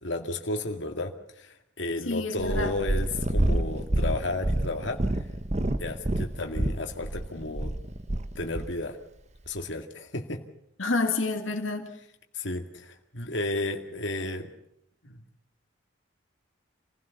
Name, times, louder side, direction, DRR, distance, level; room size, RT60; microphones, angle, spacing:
voice 1, 0.0-5.0 5.8-7.8 8.4-9.0 9.5-10.4 12.3-14.5 15.0-15.2, left 2 dB, 65° left, 3 dB, 2.1 m, -33 dB
voice 2, 2.1-2.7 10.8-11.9, left 3 dB, 80° left, 3 dB, 1.9 m, -28 dB
Purr, 2.4-8.7 9.5-9.6, right 1 dB, 35° right, 0.9 m, -28 dB
27.0 x 16.0 x 7.1 m, 0.78 s
head